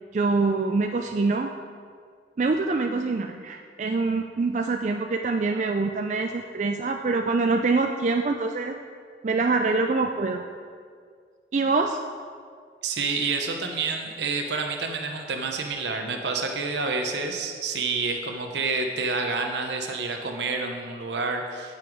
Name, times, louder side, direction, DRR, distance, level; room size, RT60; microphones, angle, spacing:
voice 1, 0.1-1.5 2.4-8.7 9.2-10.4 11.5-12.0, right 3 dB, 40° right, 4 dB, 0.4 m, -25 dB
voice 2, 12.8-21.8, right 4 dB, 80° right, 3 dB, 0.8 m, -28 dB
12.5 x 5.6 x 4.6 m, 2.1 s
head